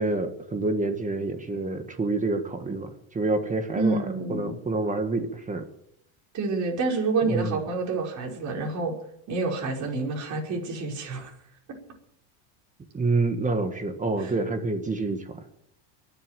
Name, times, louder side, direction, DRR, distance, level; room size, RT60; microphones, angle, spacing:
voice 1, 0.0-4.0 4.3-5.7 7.2-7.6 12.9-15.4, right 3 dB, 15° right, 7 dB, 1.6 m, -27 dB
voice 2, 3.7-4.5 6.3-8.9 9.3-11.3 14.2-14.3, right 3 dB, 40° right, -1 dB, 5.4 m, -28 dB
23.0 x 8.2 x 7.7 m, 0.76 s
cardioid pair, 140°, 45 cm